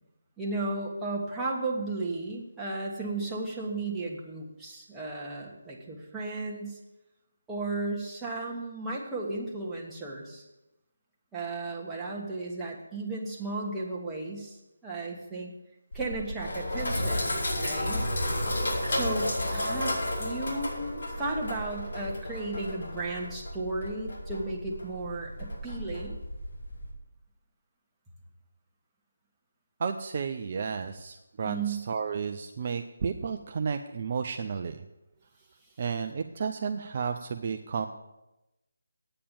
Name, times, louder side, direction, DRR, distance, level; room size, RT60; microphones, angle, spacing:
voice 1, 0.4-6.8 7.5-10.4 11.3-15.5 15.9-18.1 18.9-19.9 20.2-26.2 31.4-31.8, right 2 dB, 10° right, -4 dB, 1.5 m, -34 dB
Sink (filling or washing), 15.9-26.9, left 1 dB, 60° left, 4.8 m, -32 dB
voice 2, 29.8-34.8 35.8-37.9, right 6 dB, 40° right, 6 dB, 0.5 m, -32 dB
8.9 x 8.5 x 7.0 m, 0.98 s
figure-of-eight pair, 155°, 0 cm